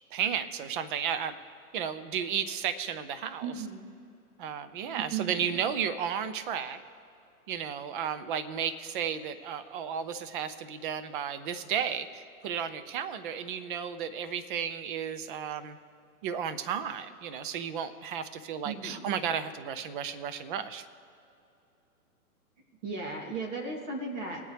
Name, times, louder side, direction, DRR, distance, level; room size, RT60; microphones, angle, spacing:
voice 1, 0.1-1.4 1.7-3.5 4.4-6.8 7.5-15.8 16.2-20.9, right 8 dB, 35° right, 12 dB, 0.7 m, -33 dB
voice 2, 3.4-3.8 4.8-5.6 18.6-19.1 22.8-24.4, right 4 dB, 50° right, 0 dB, 3.0 m, -36 dB
21.5 x 8.9 x 3.4 m, 2.6 s
hypercardioid pair, 140°, 45 cm